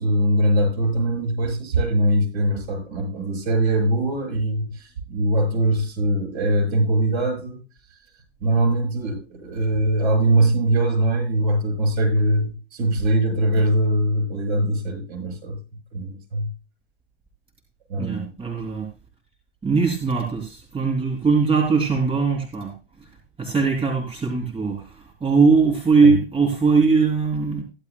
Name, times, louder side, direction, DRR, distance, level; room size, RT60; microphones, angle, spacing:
voice 1, 0.0-7.6 7.9-8.0 8.4-15.6 15.9-16.5 17.9-18.3 26.0-26.2, right 1 dB, 55° right, 4 dB, 7.5 m, -22 dB
voice 2, 18.0-18.9 19.6-22.7 23.4-27.6, right 4 dB, 15° right, 1 dB, 3.4 m, -20 dB
15.0 x 12.0 x 2.3 m, 0.30 s
hypercardioid pair, 105°, 33 cm